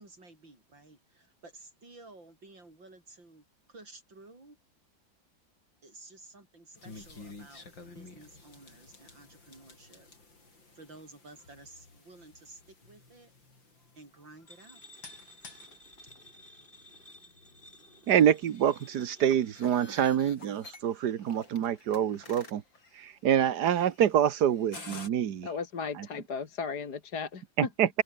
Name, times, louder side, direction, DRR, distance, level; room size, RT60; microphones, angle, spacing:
voice 1, 0.0-4.6 5.8-10.1 10.7-13.3 14.0-14.8 16.0-16.1, right 2 dB, 85° right, 7.8 m, -53 dB
sound 1, 6.7-25.1, left 3 dB, 90° left, 6.1 m, -52 dB
sound 2, 14.5-19.6, left 1 dB, 25° left, 6.8 m, -55 dB
voice 2, 18.1-22.6 23.0-25.5 26.0-26.1 27.6-28.0, right 9 dB, 60° right, 1.7 m, -26 dB
voice 3, 25.4-27.4, left 5 dB, 60° left, 2.6 m, -36 dB
omnidirectional pair, 2.0 m